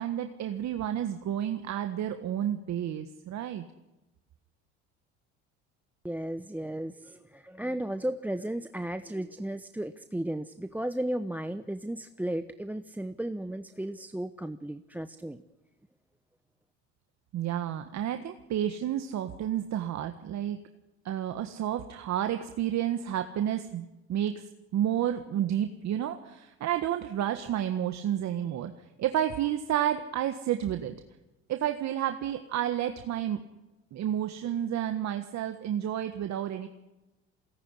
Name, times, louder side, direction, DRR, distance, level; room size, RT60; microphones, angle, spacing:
voice 1, 0.0-3.6 17.3-20.6 21.0-24.4 24.7-28.7 29.0-30.9 31.5-33.4 33.9-36.7, right 11 dB, 55° right, 7 dB, 1.6 m, -30 dB
voice 2, 6.0-15.4, right 1 dB, 5° right, 12 dB, 0.9 m, -34 dB
22.0 x 18.5 x 9.9 m, 1.0 s
supercardioid pair, 80°, 34 cm